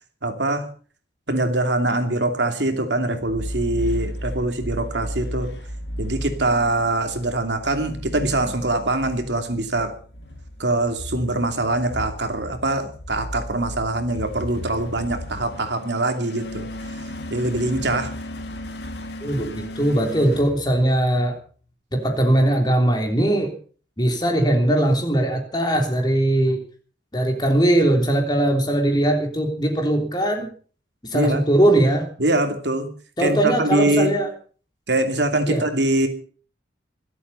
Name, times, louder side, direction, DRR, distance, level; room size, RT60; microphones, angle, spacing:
voice 1, 0.2-0.7 1.3-5.5 6.0-9.9 10.6-16.7 17.3-18.1 31.1-31.4 32.2-32.9 33.2-34.1 34.9-36.1, right 2 dB, 75° right, 6 dB, 2.7 m, -23 dB
sound 1, 3.2-21.3, equal, 65° left, 2.3 m, -34 dB
voice 2, 19.2-21.4 21.9-23.5 24.0-26.6 27.1-30.5 31.1-32.1 33.2-34.3 35.5-35.6, right 1 dB, 25° left, 4 dB, 3.2 m, -20 dB
25.5 x 8.5 x 5.6 m, 0.42 s
head